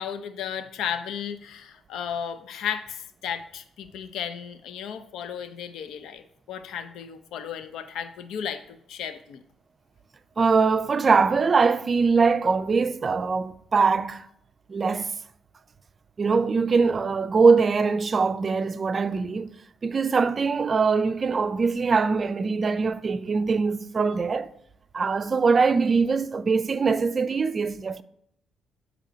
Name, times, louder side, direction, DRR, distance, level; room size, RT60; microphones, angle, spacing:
voice 1, 0.0-9.4, left 8 dB, 80° left, 0.6 m, -34 dB
voice 2, 10.4-14.2 14.7-15.1 16.2-19.5 19.8-24.5 24.9-28.0, right 4 dB, 40° right, 0.4 m, -22 dB
7.9 x 3.1 x 5.0 m
cardioid pair, 90°, 0 cm